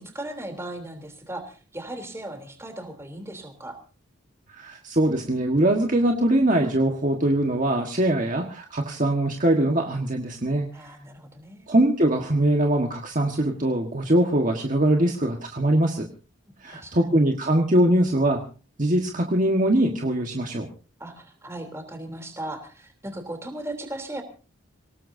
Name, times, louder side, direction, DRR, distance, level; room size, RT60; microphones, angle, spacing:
voice 1, 0.0-3.8 10.7-11.7 16.7-17.3 21.0-24.2, right 1 dB, 15° right, 5 dB, 3.3 m, -37 dB
voice 2, 4.5-10.9 11.7-16.1 16.6-18.4 18.8-20.7, right 1 dB, 40° right, 2 dB, 1.5 m, -22 dB
26.0 x 18.0 x 2.7 m, 0.36 s
head